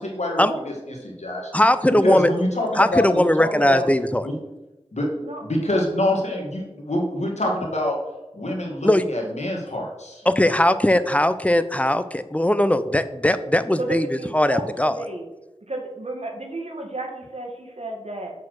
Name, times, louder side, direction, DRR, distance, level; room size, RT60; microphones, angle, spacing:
voice 1, 0.0-1.5 1.9-3.8 4.2-4.3 4.9-5.1 5.4-8.0 8.3-10.2, left 1 dB, 90° left, 0 dB, 1.8 m, -26 dB
voice 2, 1.5-2.3 2.8-4.2 8.8-9.0 10.3-14.1 14.3-14.9, left 1 dB, 10° left, 12 dB, 0.5 m, -19 dB
voice 3, 13.8-15.2 15.7-18.3, right 2 dB, 75° right, 1 dB, 1.6 m, -32 dB
7.1 x 4.2 x 6.3 m, 1.0 s
wide cardioid pair, 45°, 11 cm